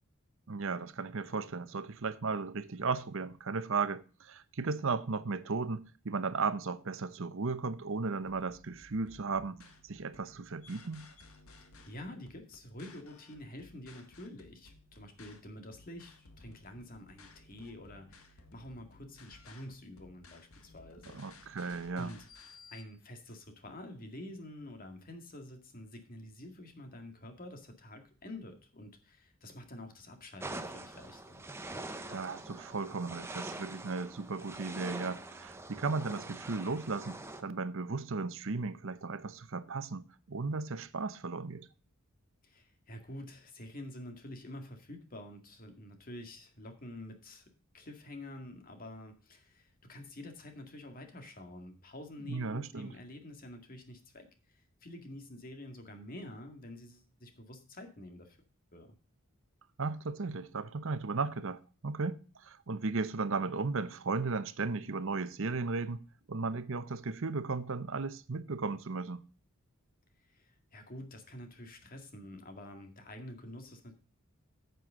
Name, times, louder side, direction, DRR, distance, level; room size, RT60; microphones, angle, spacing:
voice 1, 0.5-11.1 21.1-22.1 32.1-41.7 52.3-52.9 59.8-66.0 66.3-69.2, right 4 dB, 65° right, 0.8 m, -35 dB
sound 1, 8.2-22.8, left 3 dB, 75° left, 1.7 m, -58 dB
voice 2, 11.9-21.6 22.0-22.3 22.7-31.4 42.4-58.4 58.7-59.0 70.3-73.9, left 1 dB, 40° left, 2.0 m, -48 dB
sound 2, 30.4-37.4, right 2 dB, 10° right, 0.8 m, -44 dB
9.4 x 7.9 x 3.8 m
head